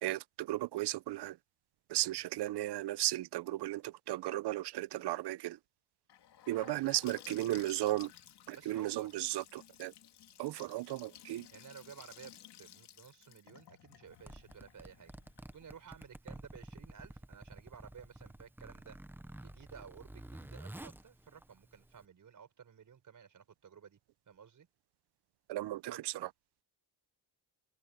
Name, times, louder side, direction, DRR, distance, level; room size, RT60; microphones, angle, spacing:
voice 1, 0.0-1.4 1.9-5.6 6.5-8.1 8.5-9.9 10.4-11.5 25.5-26.3, right 15 dB, 75° right, 0.6 m, -35 dB
Gurgling / Sink (filling or washing) / Bathtub (filling or washing), 6.1-15.9, left 11 dB, 75° left, 2.8 m, -56 dB
voice 2, 6.6-7.0 7.3-7.6 8.5-9.1 11.5-15.1 15.5-19.0 19.4-24.0 24.3-24.7 25.9-26.0, right 7 dB, 50° right, 5.7 m, -54 dB
Zipper (clothing), 14.1-22.0, right 1 dB, 5° right, 0.7 m, -51 dB
cardioid pair, 135°, 40 cm